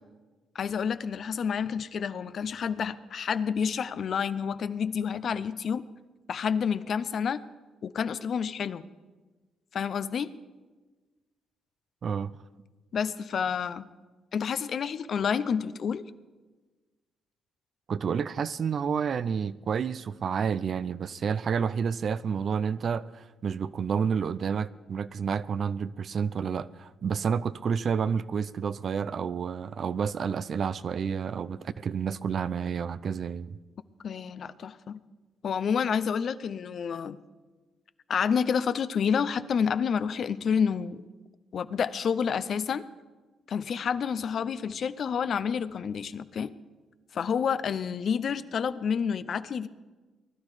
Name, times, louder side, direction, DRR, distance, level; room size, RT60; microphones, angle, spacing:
voice 1, 0.5-5.9 6.3-7.4 7.8-8.9 9.7-10.3 12.9-13.9 14.3-16.0 34.0-35.0 35.4-37.2 38.1-41.0 41.5-42.8 43.5-46.5 47.1-49.7, left 7 dB, 55° left, 0.6 m, -29 dB
voice 2, 17.9-33.6, right 6 dB, 50° right, 0.5 m, -30 dB
19.5 x 11.5 x 4.9 m
cardioid pair, 90°, 0 cm